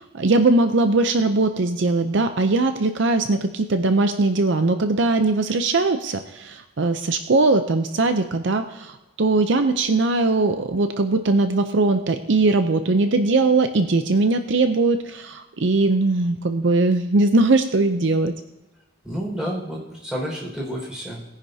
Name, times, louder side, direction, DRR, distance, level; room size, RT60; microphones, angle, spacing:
voice 1, 0.0-18.3, right 3 dB, 65° right, 8 dB, 0.6 m, -20 dB
voice 2, 19.0-21.3, equal, 5° right, -5 dB, 5.2 m, -30 dB
20.5 x 10.0 x 2.8 m, 1.0 s
head